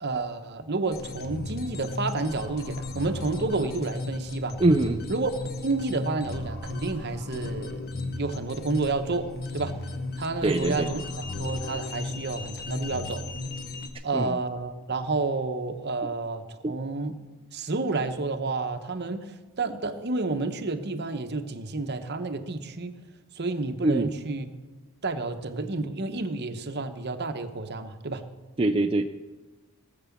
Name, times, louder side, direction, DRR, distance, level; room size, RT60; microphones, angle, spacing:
voice 1, 0.0-4.6 5.1-5.3 5.6-7.8 8.2-9.8 10.2-11.0 11.4-13.2 14.0-17.1 17.5-22.9 23.4-24.5 25.0-28.2, right 3 dB, 50° right, 8 dB, 1.0 m, -30 dB
sound 1, 0.9-13.9, left 2 dB, 45° left, 1.1 m, -35 dB
voice 2, 4.6-5.1 10.4-10.9 14.1-14.4 16.6-16.7 23.8-24.1 28.6-29.0, right 2 dB, 25° right, 4 dB, 0.4 m, -23 dB
18.0 x 6.9 x 7.2 m, 1.2 s
head